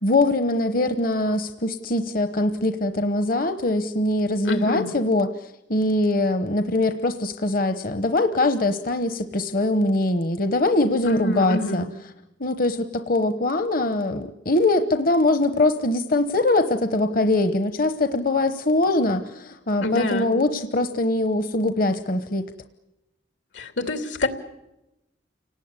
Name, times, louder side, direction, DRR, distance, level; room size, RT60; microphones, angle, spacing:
voice 1, 0.0-11.9 12.4-22.4, left 2 dB, 50° left, 8 dB, 1.1 m, -22 dB
voice 2, 4.4-4.9 11.0-11.8 19.8-20.3 23.5-24.3, left 1 dB, 90° left, 6 dB, 2.9 m, -26 dB
29.5 x 19.0 x 9.6 m, 0.95 s
head